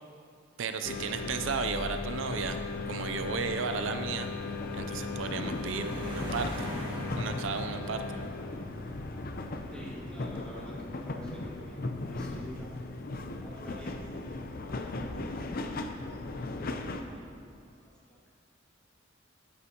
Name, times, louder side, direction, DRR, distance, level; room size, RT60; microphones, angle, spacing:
voice 1, 0.6-2.6 2.9-4.3 4.7-6.7 7.2-8.2, right 5 dB, 70° right, 8 dB, 0.5 m, -34 dB
sound 1, 0.8-17.0, left 3 dB, 50° left, 0.6 m, -37 dB
sound 2, 2.1-12.8 13.6-14.0, equal, 25° right, 1.6 m, -46 dB
voice 2, 9.7-11.8 12.1-12.7 13.4-14.1 14.4-15.1 15.4-15.5 16.8-18.3, equal, 5° left, -7 dB, 2.2 m, -48 dB
12.5 x 9.7 x 2.9 m, 2.3 s
head